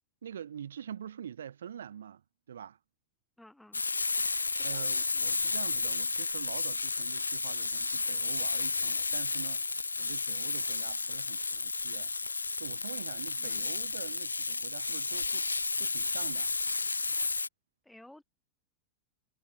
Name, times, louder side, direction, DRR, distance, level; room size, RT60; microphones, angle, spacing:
voice 1, 0.2-2.8 4.2-12.1 12.6-15.5 15.8-16.5, right 9 dB, 65° right, 1.3 m, -45 dB
voice 2, 3.4-3.8 4.5-4.9 13.4-13.7 17.8-18.2, left 1 dB, 5° left, 5.1 m, -55 dB
Frying (food), 3.7-17.5, left 3 dB, 80° left, 0.8 m, -32 dB
figure-of-eight pair, 90°, 0 cm